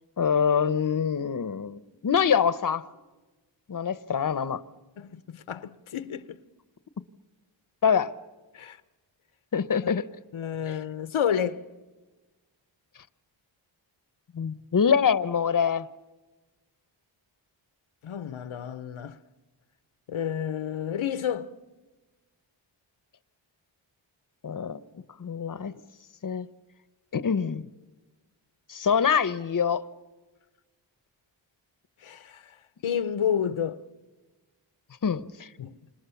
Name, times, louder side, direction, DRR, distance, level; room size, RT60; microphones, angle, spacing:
voice 1, 0.2-2.9 3.7-4.6 7.8-8.1 9.5-10.1 10.7-10.8 14.3-15.9 24.4-24.8 25.2-25.8 26.2-26.5 27.1-27.7 28.7-29.9 35.0-35.5, left 7 dB, 40° left, 0.9 m, -25 dB
voice 2, 5.0-6.4 8.5-8.8 10.3-11.6 18.0-19.2 20.1-21.5 32.0-32.4 32.8-33.8 35.6-35.8, left 8 dB, 85° left, 0.9 m, -30 dB
29.0 x 26.5 x 7.1 m
wide cardioid pair, 70°, 48 cm